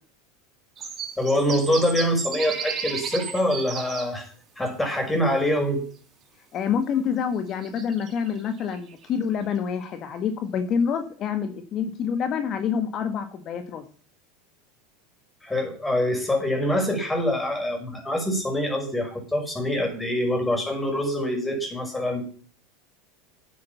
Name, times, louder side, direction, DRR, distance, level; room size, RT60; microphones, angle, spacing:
sound 1, 0.8-4.1 5.0-5.1 6.9-7.0 7.5-9.1 9.5-9.6, right 6 dB, 35° right, 4.3 m, -34 dB
voice 1, 1.2-4.3 4.6-5.8 15.4-22.2, left 1 dB, 10° left, 3 dB, 5.8 m, -25 dB
voice 2, 6.5-13.8, left 7 dB, 45° left, 8 dB, 1.5 m, -27 dB
9.5 x 8.9 x 7.1 m, 0.43 s
hypercardioid pair, 100°, 0 cm